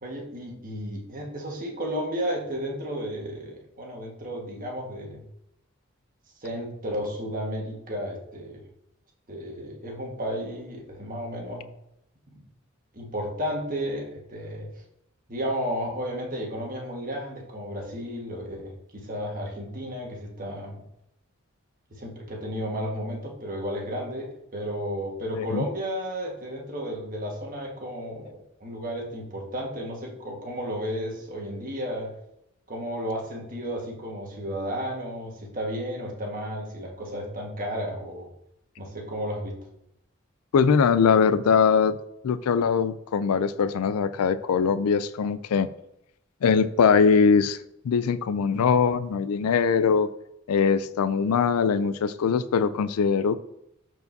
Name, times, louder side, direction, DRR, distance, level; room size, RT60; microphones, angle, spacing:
voice 1, 0.0-5.2 6.4-8.6 9.3-11.7 12.3-12.4 12.9-14.7 15.3-20.8 21.9-32.1 32.7-38.3 38.8-39.6, equal, 40° right, 0 dB, 1.5 m, -33 dB
voice 2, 40.5-42.0 42.2-45.7 46.4-47.6 47.8-50.1 50.5-53.4, left 6 dB, 85° left, 14 dB, 0.4 m, -22 dB
13.0 x 4.7 x 2.7 m, 0.80 s
head